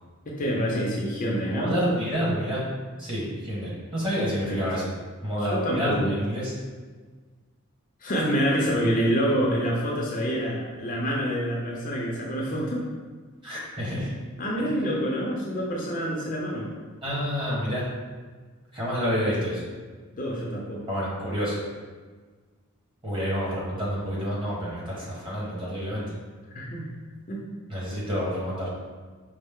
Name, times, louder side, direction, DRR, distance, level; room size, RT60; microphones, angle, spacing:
voice 1, 0.3-1.8 4.5-4.7 5.5-6.2 8.0-12.9 14.4-16.7 20.2-20.8 26.5-26.9 27.3-27.5, equal, 40° left, -3 dB, 0.6 m, -27 dB
voice 2, 1.5-2.6 3.0-4.9 5.2-6.5 13.4-14.1 14.7-14.8 17.0-17.9 18.7-19.6 20.9-21.6 23.0-26.1 27.7-28.7, equal, 25° right, -7 dB, 1.3 m, -28 dB
5.2 x 2.0 x 3.6 m, 1.4 s
head